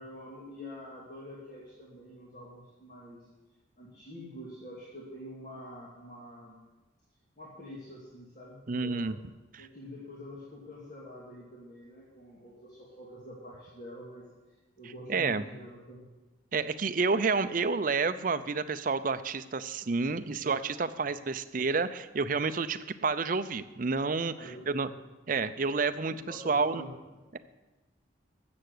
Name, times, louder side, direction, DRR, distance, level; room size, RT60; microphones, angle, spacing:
voice 1, 0.0-3.3 3.8-6.6 7.4-9.1 9.6-16.1 24.4-25.0 26.1-27.2, left 1 dB, 40° left, -5 dB, 2.3 m, -46 dB
voice 2, 8.7-9.1 9.5-9.7 15.1-15.4 16.5-24.3 24.7-24.9 25.3-26.8 27.3-27.4, right 4 dB, 45° right, 11 dB, 0.5 m, -29 dB
13.0 x 7.8 x 6.6 m, 1.1 s
head